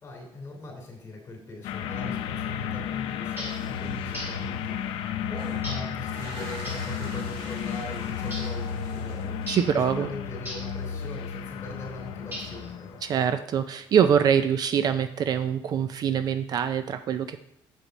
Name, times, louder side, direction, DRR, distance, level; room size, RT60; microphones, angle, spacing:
voice 1, 0.0-5.0 5.3-9.4 9.7-13.0, left 2 dB, 25° left, 0 dB, 3.1 m, -41 dB
sound 1, 1.6-13.1, left 8 dB, 75° left, 0.6 m, -33 dB
sound 2, 3.4-3.7 4.1-4.4 5.6-5.9 6.6-6.9 8.3-8.6 9.5-9.8 10.4-10.7 12.3-12.7, equal, 25° right, 2.8 m, -38 dB
sound 3, 5.3-9.8, right 3 dB, 65° right, 1.9 m, -46 dB
voice 2, 9.5-10.1 13.0-17.4, right 8 dB, 45° right, 10 dB, 0.4 m, -24 dB
7.6 x 7.0 x 4.1 m, 0.73 s
cardioid pair, 145°, 9 cm